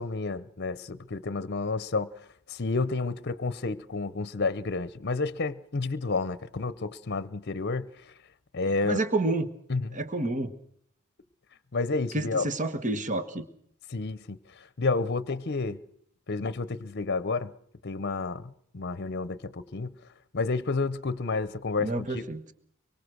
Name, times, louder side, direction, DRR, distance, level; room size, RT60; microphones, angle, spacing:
voice 1, 0.0-2.1 2.5-7.9 8.5-9.0 9.7-10.0 11.7-12.5 13.9-14.4 14.8-15.8 16.3-17.5 17.8-19.9 20.3-22.3, left 3 dB, 50° left, 0.8 m, -30 dB
voice 2, 8.8-9.5 9.9-10.5 12.1-13.4 21.8-22.4, right 2 dB, 35° right, 1.4 m, -29 dB
24.0 x 24.0 x 6.3 m
head